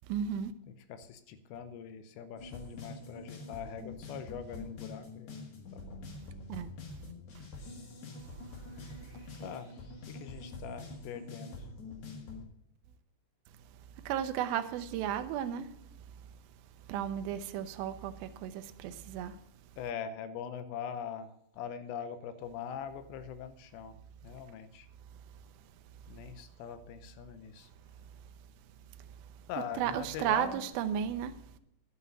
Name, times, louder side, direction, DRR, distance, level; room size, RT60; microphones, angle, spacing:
voice 1, 0.1-0.5 6.5-6.7 14.1-15.8 16.1-16.2 16.9-19.4 26.0-26.1 29.0-29.3 29.8-31.6, right 9 dB, 85° right, 2.1 m, -34 dB
voice 2, 0.7-5.4 5.7-6.0 9.4-9.7 10.1-11.7 19.8-24.0 24.2-24.9 26.1-27.7 29.5-30.6, left 7 dB, 85° left, 3.0 m, -42 dB
sound 1, 2.4-12.4, left 2 dB, 50° left, 2.8 m, -46 dB
11.0 x 6.1 x 8.4 m
omnidirectional pair, 5.0 m